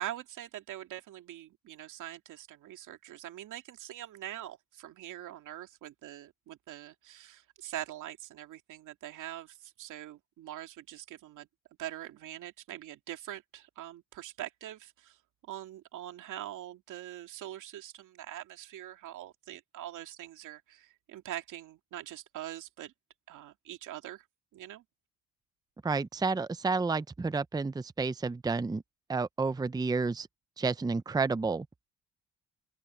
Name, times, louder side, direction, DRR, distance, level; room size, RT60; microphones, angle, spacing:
voice 1, 0.0-11.5 11.8-15.2 15.5-22.9 23.3-24.2 24.5-24.8, right 13 dB, 85° right, 2.5 m, -43 dB
voice 2, 25.8-28.8 29.1-30.3 30.6-31.7, right 4 dB, 15° right, 0.6 m, -30 dB
open air
cardioid pair, 90°, 30 cm